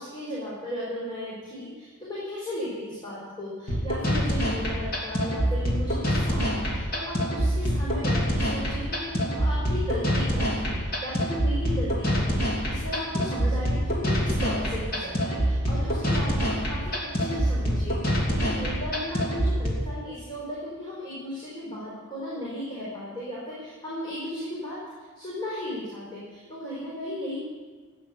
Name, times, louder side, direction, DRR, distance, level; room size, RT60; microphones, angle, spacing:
voice 1, 0.0-27.4, left 1 dB, 20° left, -8 dB, 4.3 m, -36 dB
sound 1, 3.7-19.7, equal, 50° left, 2.9 m, -25 dB
15.0 x 9.5 x 7.0 m, 1.4 s
head